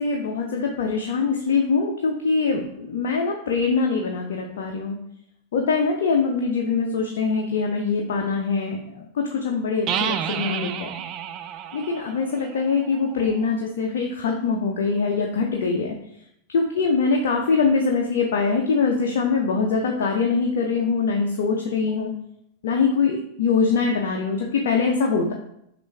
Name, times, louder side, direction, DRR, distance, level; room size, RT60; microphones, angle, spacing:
voice 1, 0.0-5.0 5.5-10.9 11.7-16.0 16.5-22.1 22.6-25.3, left 4 dB, 55° left, 1 dB, 0.6 m, -23 dB
sound 1, 9.9-13.5, right 9 dB, 35° right, 0.3 m, -31 dB
6.1 x 2.5 x 3.3 m, 0.75 s
figure-of-eight pair, 90°, 0 cm